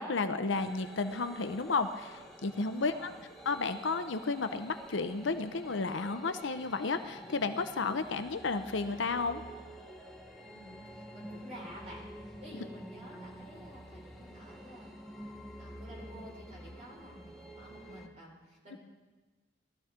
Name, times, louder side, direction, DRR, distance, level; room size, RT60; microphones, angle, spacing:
voice 1, 0.0-3.1 3.5-9.4 18.7-18.8, left 4 dB, 75° left, 9 dB, 0.7 m, -32 dB
sound 1, 0.5-18.1, equal, ahead, 1.1 m, -49 dB
voice 2, 2.7-3.2 10.4-14.9 15.6-18.8, equal, 35° right, -3 dB, 5.0 m, -51 dB
20.0 x 13.0 x 3.7 m, 1.2 s
head